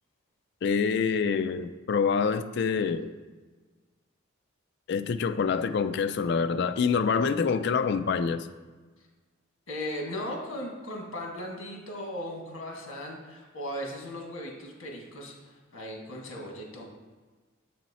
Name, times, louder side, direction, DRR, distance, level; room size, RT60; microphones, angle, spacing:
voice 1, 0.6-3.1 4.9-8.5, left 5 dB, 55° left, 10 dB, 0.3 m, -26 dB
voice 2, 9.7-16.8, left 1 dB, 75° left, 0 dB, 1.5 m, -37 dB
7.1 x 4.3 x 4.1 m, 1.3 s
head